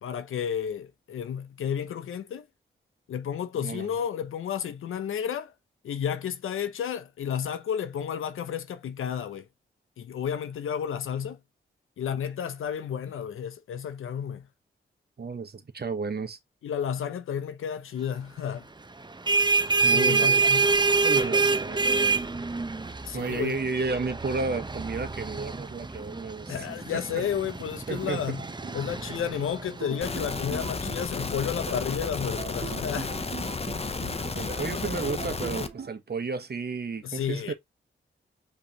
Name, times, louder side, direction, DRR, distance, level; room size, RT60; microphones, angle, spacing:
voice 1, 0.0-2.4 3.1-5.5 5.8-9.4 10.0-11.4 12.0-14.4 16.6-18.6 19.8-20.6 23.0-23.6 26.5-28.4 28.7-33.1 37.0-37.5, left 8 dB, 80° left, 0.7 m, -32 dB
voice 2, 3.6-3.9 15.2-16.4 19.8-20.5 21.0-22.3 23.1-26.7 26.9-27.2 27.9-28.4 34.2-37.5, right 4 dB, 50° right, 1.2 m, -32 dB
sound 1, 19.0-30.3, right 4 dB, 20° right, 0.7 m, -27 dB
sound 2, 27.9-35.9, right 6 dB, 65° right, 1.3 m, -42 dB
sound 3, 30.0-35.7, left 4 dB, 30° left, 0.8 m, -32 dB
5.2 x 3.3 x 2.9 m
cardioid pair, 45°, 21 cm